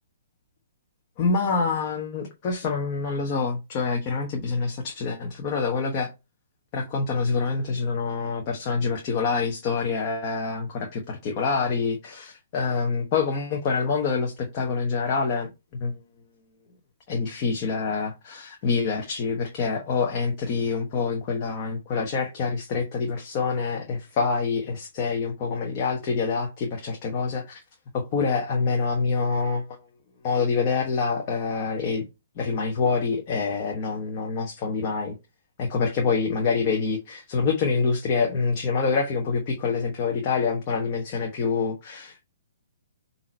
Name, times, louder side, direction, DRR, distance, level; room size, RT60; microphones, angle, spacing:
voice 1, 1.2-6.1 6.7-16.0 17.1-27.6 27.9-29.6 30.2-32.0 32.4-35.2 35.6-42.2, left 4 dB, 35° left, 1.2 m, -26 dB
7.4 x 2.9 x 4.4 m
figure-of-eight pair, 125°, 0 cm